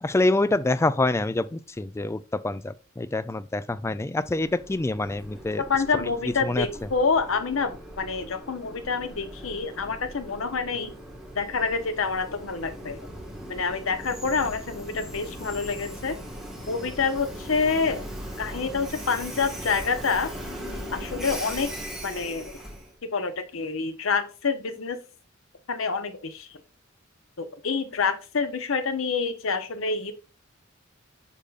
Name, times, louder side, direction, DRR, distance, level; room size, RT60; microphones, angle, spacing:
voice 1, 0.0-5.6 6.4-6.7, left 2 dB, 15° left, 0.3 m, -26 dB
Train, 4.2-22.9, equal, ahead, 1.6 m, -39 dB
voice 2, 5.6-10.9 11.3-13.0 13.5-16.2 16.7-18.0 18.4-20.3 20.9-21.7 22.0-22.6 23.1-25.0 25.7-26.6 27.4-30.1, left 5 dB, 80° left, 0.9 m, -27 dB
8.3 x 5.4 x 2.4 m
head